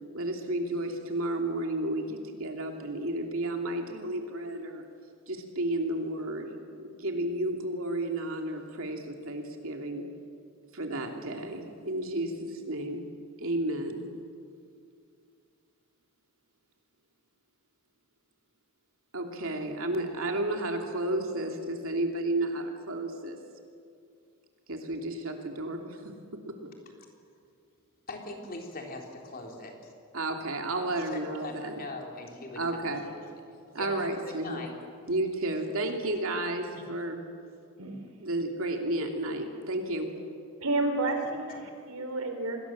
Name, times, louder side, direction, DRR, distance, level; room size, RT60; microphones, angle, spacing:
voice 1, 0.1-4.8 5.3-10.0 10.7-13.0 13.4-14.1 19.1-23.4 24.7-26.1 26.5-26.7 30.1-31.8 32.5-33.0 33.7-34.6 35.1-37.2 38.2-40.1, right 1 dB, 65° right, 3 dB, 3.0 m, -32 dB
voice 2, 28.1-29.9 31.0-33.2 33.8-34.8, left 2 dB, 40° left, 2 dB, 3.6 m, -41 dB
voice 3, 40.6-42.6, right 2 dB, 85° right, 5 dB, 3.9 m, -30 dB
27.0 x 21.0 x 7.6 m, 2.3 s
head